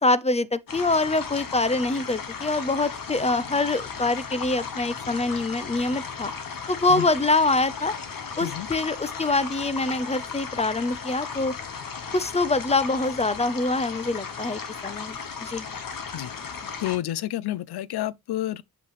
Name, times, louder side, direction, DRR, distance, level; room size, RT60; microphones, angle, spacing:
voice 1, 0.0-6.3 6.7-7.9 8.4-11.5 12.1-15.7, left 2 dB, 15° left, 0.6 m, -25 dB
sound 1, 0.7-17.0, left 6 dB, 60° left, 1.7 m, -36 dB
voice 2, 16.8-18.6, left 13 dB, 80° left, 0.6 m, -29 dB
8.2 x 5.3 x 3.1 m
cardioid pair, 100°, 38 cm